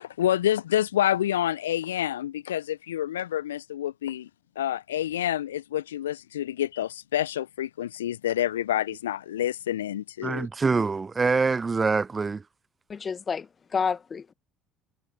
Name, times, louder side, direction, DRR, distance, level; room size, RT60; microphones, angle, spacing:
voice 1, 0.2-4.3 4.5-10.5, left 12 dB, 75° left, 1.2 m, -28 dB
voice 2, 10.2-12.4, right 4 dB, 25° right, 0.4 m, -25 dB
voice 3, 12.9-14.3, left 6 dB, 30° left, 2.2 m, -30 dB
figure-of-eight pair, 55°, 0 cm